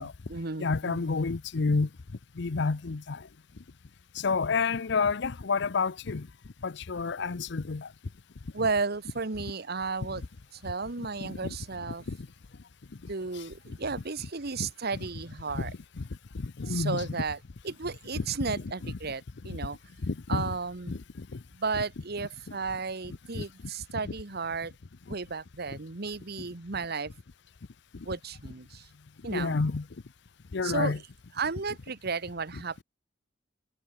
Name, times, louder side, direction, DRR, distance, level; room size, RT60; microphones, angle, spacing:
voice 1, 0.0-1.0 7.2-7.3 8.5-10.2 10.5-12.0 13.1-15.7 16.7-17.4 17.6-19.8 20.3-21.0 21.5-24.7 25.1-27.1 28.0-28.9 29.2-29.6 30.6-31.0 31.4-32.8, right 4 dB, 55° right, 1.3 m, -34 dB
voice 2, 0.6-1.9 2.4-3.2 4.2-6.3 6.6-7.9 11.2-11.6 12.1-12.2 15.5-15.7 16.0-16.1 16.3-17.0 18.1-18.2 18.8-18.9 20.0-20.5 20.9-21.4 23.4-23.5 24.0-24.1 29.3-29.9 30.5-31.0, left 4 dB, 65° left, 0.7 m, -29 dB
head